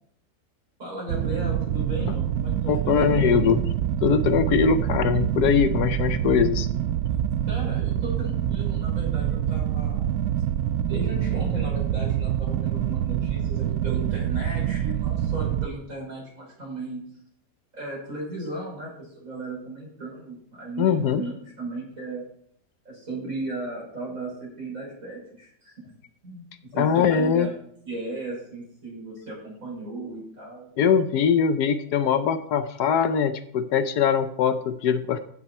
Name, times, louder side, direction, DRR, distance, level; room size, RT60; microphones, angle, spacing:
voice 1, 0.8-3.5 7.5-10.1 10.9-17.0 17.7-22.2 22.8-25.7 26.2-30.7, right 2 dB, 50° right, -4 dB, 6.2 m, -36 dB
sound 1, 1.1-15.7, right 10 dB, 75° right, 1.1 m, -26 dB
voice 2, 2.7-3.6 4.0-6.7 20.8-21.2 26.8-27.5 30.8-35.2, left 7 dB, 75° left, 11 dB, 1.2 m, -22 dB
15.0 x 6.6 x 4.3 m, 0.67 s
omnidirectional pair, 1.8 m